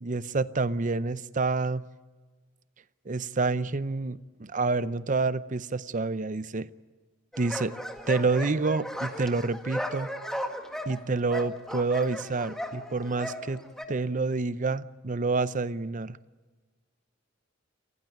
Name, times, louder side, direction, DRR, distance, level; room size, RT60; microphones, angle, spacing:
voice 1, 0.0-1.9 3.1-6.7 7.4-7.7 8.1-10.1 10.9-13.6 13.9-16.2, right 3 dB, 40° right, 15 dB, 0.7 m, -28 dB
sound 1, 7.3-13.8, equal, ahead, 1.7 m, -36 dB
29.0 x 15.5 x 9.2 m, 1.4 s
head